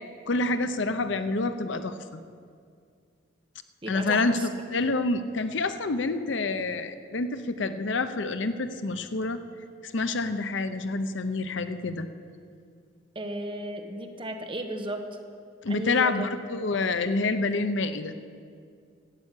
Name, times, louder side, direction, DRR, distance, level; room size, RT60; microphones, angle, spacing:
voice 1, 0.3-2.2 3.9-9.4 9.8-12.1 15.6-18.1, left 3 dB, 70° left, 10 dB, 0.7 m, -28 dB
voice 2, 3.8-4.4 13.1-15.0 15.7-16.3, right 1 dB, 30° right, 5 dB, 1.0 m, -34 dB
12.5 x 8.6 x 8.2 m, 2.3 s
head